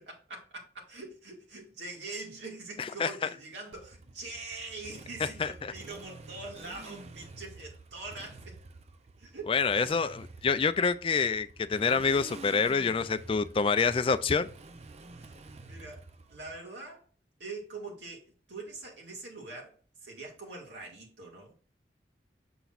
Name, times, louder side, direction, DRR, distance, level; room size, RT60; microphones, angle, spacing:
voice 1, 0.0-8.6 9.2-9.9 15.2-16.0 16.3-17.0 17.4-18.2 18.5-21.5, right 3 dB, 90° right, 2.1 m, -44 dB
voice 2, 2.8-3.1 5.2-5.7 9.5-14.5, left 5 dB, 30° left, 0.4 m, -27 dB
Motorcycle, 3.7-16.6, right 2 dB, 40° right, 0.5 m, -49 dB
6.8 x 6.1 x 2.5 m
head